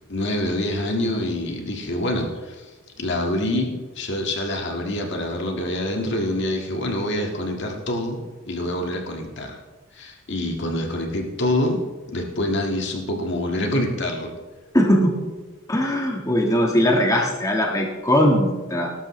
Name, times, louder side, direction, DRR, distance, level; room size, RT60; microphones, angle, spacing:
voice 1, 0.1-2.7 3.0-9.6 9.9-11.8 12.1-14.3, left 1 dB, 60° left, 2 dB, 1.8 m, -26 dB
voice 2, 14.7-15.1 15.7-18.9, equal, 15° left, 0 dB, 1.5 m, -20 dB
19.5 x 12.0 x 3.2 m, 1.3 s
head